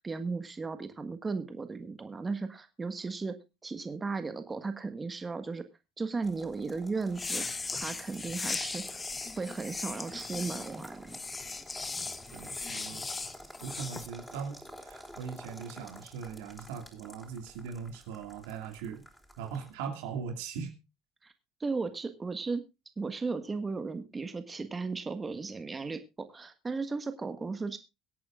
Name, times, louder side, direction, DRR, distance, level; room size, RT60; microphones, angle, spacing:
voice 1, 0.0-3.3 3.6-5.6 6.0-7.4 7.7-9.0 9.4-11.2 21.2-21.3 21.6-22.6 23.0-27.8, right 4 dB, 25° right, 9 dB, 1.5 m, -35 dB
sound 1, 6.2-19.7, equal, 5° left, 4.5 m, -50 dB
sound 2, 7.1-14.1, left 4 dB, 25° left, 1.1 m, -38 dB
voice 2, 12.3-13.1 13.6-19.0 19.4-20.8, right 6 dB, 80° right, 6 dB, 2.3 m, -40 dB
23.5 x 8.6 x 2.5 m, 0.25 s
hypercardioid pair, 70°, 0 cm